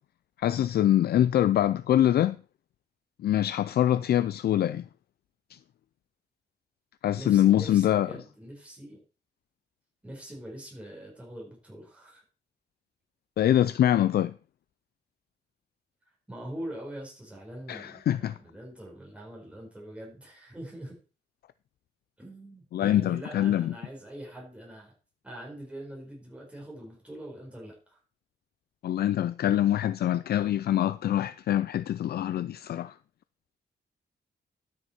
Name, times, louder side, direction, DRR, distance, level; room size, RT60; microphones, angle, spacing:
voice 1, 0.4-2.4 3.2-4.9 5.5-5.6 7.0-8.1 13.4-14.3 17.7-18.3 22.7-23.7 28.8-32.9, left 11 dB, 60° left, 0.4 m, -24 dB
voice 2, 7.1-9.0 10.0-12.2 16.3-21.0 22.2-24.9 25.2-28.0, right 1 dB, 5° right, 4.7 m, -43 dB
12.5 x 6.7 x 4.4 m
wide cardioid pair, 165°, 18 cm